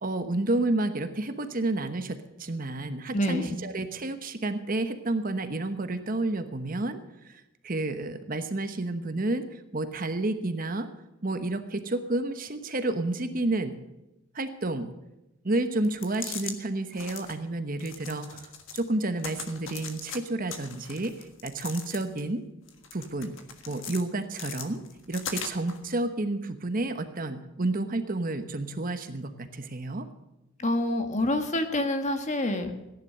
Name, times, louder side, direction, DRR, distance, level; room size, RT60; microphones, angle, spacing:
voice 1, 0.0-7.0 7.2-10.9 11.2-13.8 14.3-14.9 15.4-21.1 21.4-22.4 22.9-23.3 23.7-24.8 25.1-30.1, right 2 dB, 40° right, 9 dB, 1.0 m, -30 dB
voice 2, 3.1-3.6 30.6-32.7, left 1 dB, 35° left, 7 dB, 1.4 m, -27 dB
sound 1, 15.8-16.6 16.9-17.4 17.8-18.9 19.2-20.2 20.5-22.3 22.7-24.0 24.4-25.8, left 6 dB, 65° left, 1.6 m, -40 dB
16.0 x 10.5 x 6.6 m, 0.96 s
head